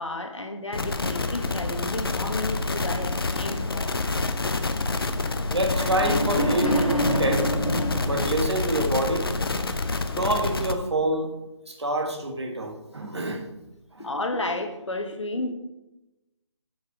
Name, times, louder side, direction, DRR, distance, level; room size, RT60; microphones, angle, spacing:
voice 1, 0.0-4.6 10.0-10.1 14.0-15.5, left 2 dB, 65° left, 5 dB, 1.2 m, -33 dB
sound 1, 0.7-10.7, left 3 dB, 50° left, 0.6 m, -28 dB
voice 2, 5.5-7.5 8.0-9.3 10.1-11.3 11.6-13.5 13.9-14.1, right 1 dB, 55° right, 3 dB, 1.4 m, -27 dB
sound 2, 5.7-9.0, equal, 90° left, 1.5 m, -27 dB
6.5 x 6.1 x 5.0 m, 0.97 s
figure-of-eight pair, 155°, 16 cm